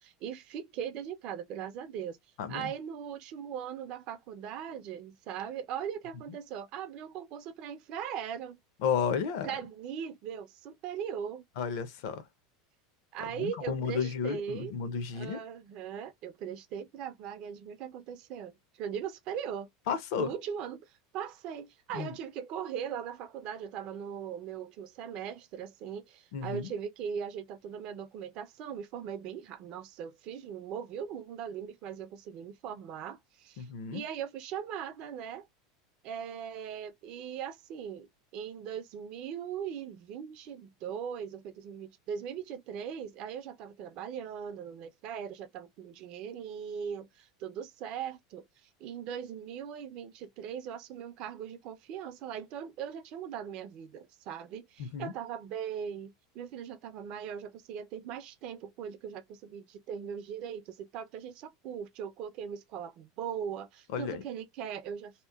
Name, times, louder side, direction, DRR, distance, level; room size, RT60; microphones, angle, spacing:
voice 1, 0.0-2.2 2.5-8.6 9.4-11.4 13.1-14.7 15.1-19.7 20.2-35.5 36.0-65.1, right 8 dB, 35° right, 0.4 m, -39 dB
voice 2, 2.4-2.7 8.8-9.5 11.6-12.2 13.4-15.4 19.9-20.3 21.9-22.1 26.3-26.7 33.6-34.0 54.8-55.1 63.9-64.2, left 6 dB, 55° left, 0.6 m, -32 dB
2.8 x 2.0 x 2.2 m
supercardioid pair, 175°, 2 cm